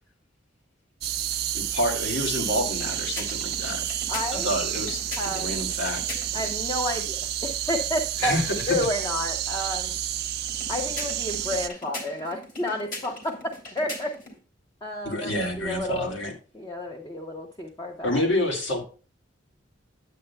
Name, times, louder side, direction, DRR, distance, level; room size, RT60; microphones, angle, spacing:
sound 1, 1.0-11.7, right 11 dB, 55° right, 0.5 m, -30 dB
voice 1, 1.5-3.9 4.3-5.0 5.3-6.0 8.2-8.9 15.0-16.3 18.0-18.9, left 1 dB, 70° left, 1 dB, 2.1 m, -28 dB
sound 2, 2.7-6.6 10.5-14.4, left 2 dB, 45° left, 2.5 m, -40 dB
voice 2, 4.1-4.5 5.2-5.5 6.3-8.3 8.7-10.0 10.7-14.1 14.8-16.1 16.5-18.2, left 1 dB, 20° left, 2 dB, 0.7 m, -31 dB
9.2 x 8.7 x 2.3 m, 0.36 s
head